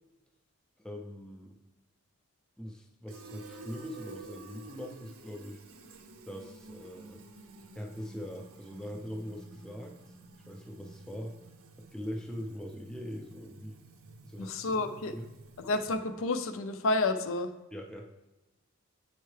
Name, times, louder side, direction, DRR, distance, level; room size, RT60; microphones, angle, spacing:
voice 1, 0.8-1.6 2.6-5.6 6.2-7.2 7.7-10.1 10.5-11.4 11.8-13.8 14.2-14.8 15.1-15.3 17.7-18.1, equal, 5° left, 0 dB, 0.4 m, -42 dB
Fill (with liquid), 3.1-16.2, right 3 dB, 75° right, 0.6 m, -51 dB
voice 2, 14.4-15.2 15.6-17.5, left 2 dB, 65° left, 7 dB, 0.5 m, -30 dB
8.8 x 4.5 x 3.2 m, 1.1 s
head